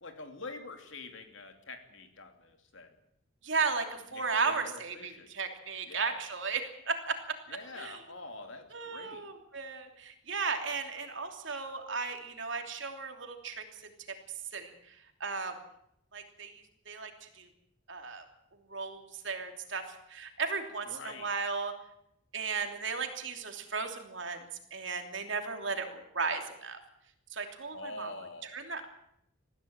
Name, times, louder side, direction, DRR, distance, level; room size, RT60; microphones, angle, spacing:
voice 1, 0.0-2.9 4.2-5.3 5.9-6.2 7.5-9.2 20.9-21.3 27.7-28.5, left 3 dB, 65° left, 6 dB, 2.8 m, -45 dB
voice 2, 3.4-7.2 7.5-8.0 8.7-13.6 14.5-14.9 15.2-15.5 16.1-17.5 17.9-18.2 18.7-21.7 22.3-24.5 24.7-26.8 27.3-28.1 28.4-28.9, right 5 dB, 60° right, 5 dB, 3.0 m, -35 dB
20.5 x 15.0 x 8.9 m, 0.77 s
head